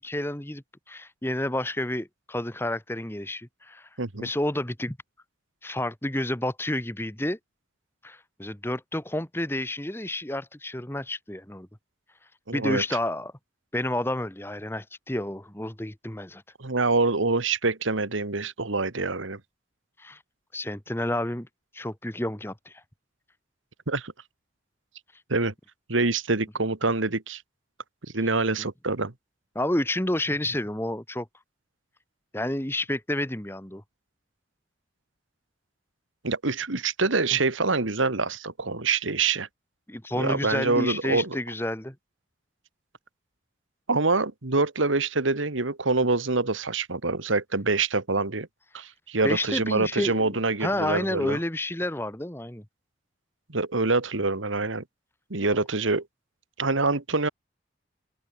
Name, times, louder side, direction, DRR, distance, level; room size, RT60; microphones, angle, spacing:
voice 1, 0.0-3.9 4.2-5.0 5.6-7.4 8.0-11.7 12.5-13.3 13.7-16.4 20.0-20.2 20.5-21.5 21.7-22.8 28.6-28.7 29.5-31.3 32.3-33.8 39.9-41.9 49.2-52.6, left 1 dB, 10° left, 1.5 m, -30 dB
voice 2, 4.0-4.3 12.5-12.8 16.6-19.4 23.9-24.1 25.3-25.5 25.9-27.4 28.1-29.1 36.2-39.5 40.1-41.4 43.9-48.5 48.7-51.4 53.5-54.8 55.3-56.0 56.6-57.3, right 3 dB, 90° right, 1.9 m, -25 dB
open air
head